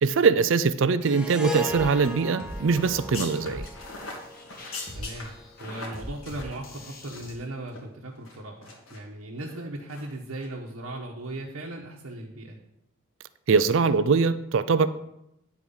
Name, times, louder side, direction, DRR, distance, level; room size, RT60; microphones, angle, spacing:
voice 1, 0.0-3.7 13.5-14.9, right 5 dB, 65° right, 14 dB, 0.5 m, -22 dB
Harp, 1.0-5.4, left 2 dB, 5° right, 0.7 m, -37 dB
sound 1, 1.7-7.3, left 1 dB, 45° left, 1.5 m, -42 dB
sound 2, 2.7-7.4 7.7-7.8 8.2-9.0 9.4-9.6 9.9-10.1 10.4-10.5, left 3 dB, 80° left, 2.2 m, -41 dB
voice 2, 4.9-5.3 5.6-12.6, right 1 dB, 85° right, -2 dB, 1.2 m, -37 dB
10.0 x 4.6 x 5.5 m, 0.84 s
head